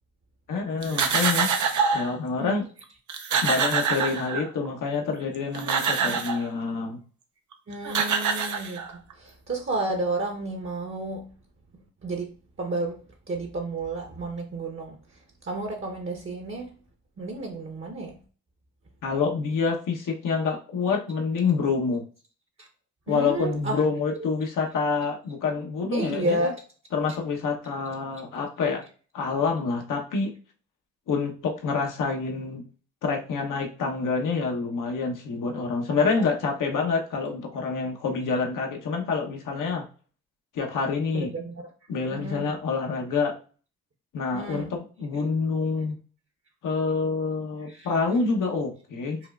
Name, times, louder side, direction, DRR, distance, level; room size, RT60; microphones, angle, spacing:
voice 1, 0.5-1.5 1.9-2.6 3.4-7.0 19.0-22.0 23.1-26.5 26.9-28.8 29.1-30.3 31.1-32.6 33.0-39.9 40.5-41.3 41.9-43.4 44.1-46.0 46.6-49.2, left 4 dB, 70° left, 1 dB, 1.0 m, -27 dB
sound 1, 0.8-2.1 2.8-2.9 3.1-4.7 5.3-6.5 7.5-7.6 7.8-9.1, right 6 dB, 60° right, 0.7 m, -25 dB
voice 2, 7.7-8.8 9.2-11.3 12.0-12.3 12.6-13.0 13.3-15.0 15.4-16.7 17.2-18.2 22.6-22.7 23.1-23.8 25.9-26.5 36.0-36.2 41.1-41.5 42.1-42.5 44.3-44.7 47.7-47.9, right 2 dB, 40° right, 3 dB, 1.0 m, -31 dB
5.4 x 2.2 x 2.4 m, 0.39 s
supercardioid pair, 50°, 33 cm